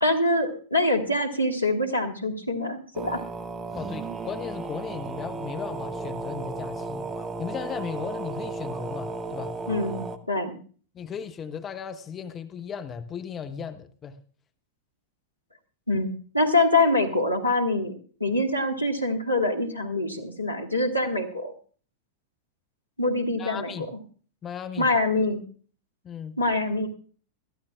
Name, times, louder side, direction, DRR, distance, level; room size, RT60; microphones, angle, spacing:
voice 1, 0.0-3.2 9.7-10.6 15.9-16.1 16.3-17.9 18.2-21.5 23.0-23.9 24.8-25.4 26.4-26.9, left 2 dB, 85° left, 1.7 m, -24 dB
sound 1, 2.9-10.2, right 3 dB, 20° right, 0.9 m, -34 dB
voice 2, 3.7-7.1 7.4-9.6 10.9-14.2 23.4-23.9 24.4-24.9 26.0-26.4, left 7 dB, 25° left, 0.8 m, -36 dB
22.0 x 13.5 x 2.4 m
figure-of-eight pair, 90°, 0 cm